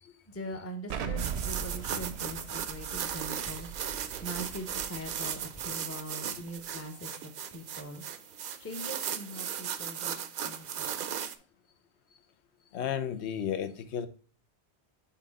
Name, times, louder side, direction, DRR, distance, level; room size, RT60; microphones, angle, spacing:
voice 1, 0.3-10.9, equal, 15° left, 0.6 m, -42 dB
Explosion, 0.9-5.6, right 7 dB, 80° right, 0.9 m, -39 dB
sound 1, 1.2-11.4, right 8 dB, 60° right, 0.6 m, -37 dB
voice 2, 12.7-14.1, left 8 dB, 85° left, 0.9 m, -33 dB
5.6 x 3.7 x 5.2 m
omnidirectional pair, 1.1 m